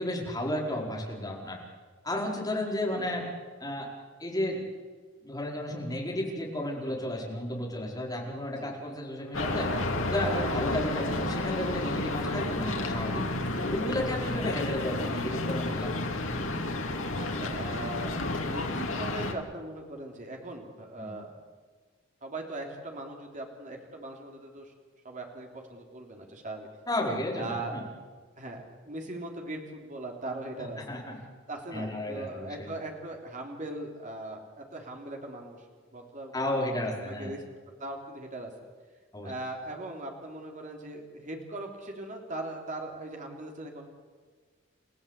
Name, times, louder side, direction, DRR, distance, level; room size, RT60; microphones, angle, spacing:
voice 1, 0.0-1.6 2.0-3.2 3.6-3.9 4.2-4.6 5.2-9.7 10.1-13.3 13.7-15.9 21.0-21.1 26.9-27.8 30.9-31.1 31.7-32.7 36.3-37.3 39.1-39.3, left 1 dB, 20° left, -2 dB, 5.1 m, -32 dB
voice 2, 2.9-3.2 8.6-8.7 14.0-14.6 17.2-21.3 22.2-24.7 25.0-26.7 27.4-28.0 28.4-30.8 31.5-35.7 35.9-37.4 37.8-38.5 39.2-43.9, right 2 dB, 40° right, 2 dB, 3.5 m, -40 dB
sound 1, 9.3-19.3, left 2 dB, 75° left, 2.7 m, -31 dB
30.0 x 16.0 x 8.3 m, 1.5 s
head